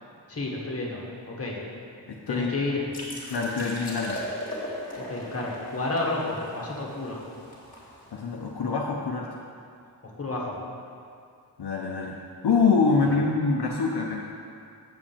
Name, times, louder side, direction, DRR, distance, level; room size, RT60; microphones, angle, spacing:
voice 1, 0.3-1.6 2.3-2.8 5.1-7.2 10.2-10.6 13.0-13.1, left 2 dB, 35° left, -3 dB, 1.6 m, -30 dB
voice 2, 2.1-2.6 3.3-4.3 8.1-9.3 11.6-12.2 12.4-14.3, left 4 dB, 70° left, -1 dB, 0.8 m, -25 dB
sound 1, 2.9-8.5, equal, 20° left, 2.1 m, -39 dB
7.7 x 5.0 x 7.3 m, 2.4 s
wide cardioid pair, 115°, 40 cm